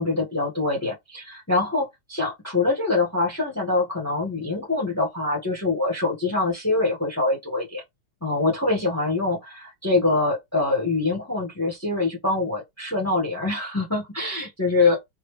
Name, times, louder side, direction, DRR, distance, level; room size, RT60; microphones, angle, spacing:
voice 1, 0.0-7.8 8.2-15.0, left 3 dB, 10° left, 1.5 m, -24 dB
4.3 x 2.8 x 3.3 m
omnidirectional pair, 2.1 m